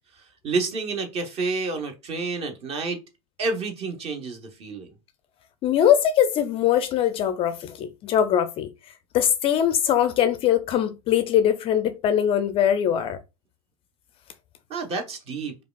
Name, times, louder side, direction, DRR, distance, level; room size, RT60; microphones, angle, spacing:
voice 1, 0.4-3.0 3.4-4.9 14.7-15.6, right 3 dB, 35° right, 0.8 m, -29 dB
voice 2, 5.6-8.7 9.1-13.2, left 10 dB, 30° left, 0.4 m, -21 dB
4.8 x 2.3 x 2.3 m
hypercardioid pair, 95°, 19 cm